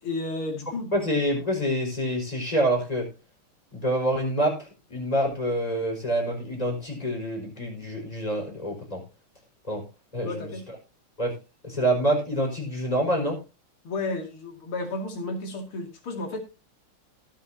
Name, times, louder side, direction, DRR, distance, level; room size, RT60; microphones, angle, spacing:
voice 1, 0.0-0.9 10.2-10.7 13.8-16.4, left 2 dB, 90° left, 4 dB, 3.3 m, -32 dB
voice 2, 0.9-3.1 3.7-9.0 9.6-9.8 10.1-10.5 11.2-11.4 11.6-13.4, right 1 dB, 15° left, 0 dB, 5.1 m, -26 dB
18.5 x 7.5 x 2.8 m, 0.29 s
omnidirectional pair, 2.3 m